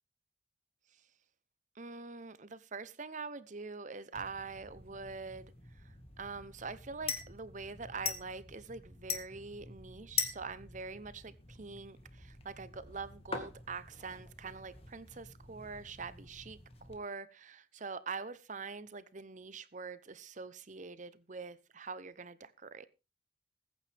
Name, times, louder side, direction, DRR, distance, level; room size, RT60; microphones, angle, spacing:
voice 1, 1.8-5.4 6.2-22.9, right 4 dB, 40° right, 0.8 m, -44 dB
sound 1, 4.1-16.9, left 6 dB, 30° left, 1.9 m, -44 dB
20.5 x 9.0 x 3.5 m
head